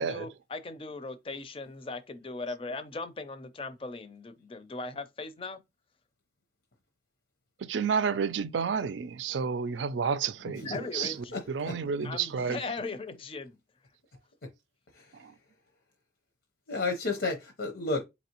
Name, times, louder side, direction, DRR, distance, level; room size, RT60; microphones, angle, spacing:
voice 1, 0.0-5.6 10.4-11.4 12.0-13.6, left 3 dB, 30° left, 0.5 m, -39 dB
voice 2, 7.6-12.7 15.1-15.3, right 6 dB, 85° right, 0.4 m, -31 dB
voice 3, 10.7-11.8 14.4-14.5 14.9-15.3 16.7-18.0, left 3 dB, 80° left, 0.8 m, -33 dB
4.2 x 3.0 x 2.9 m
head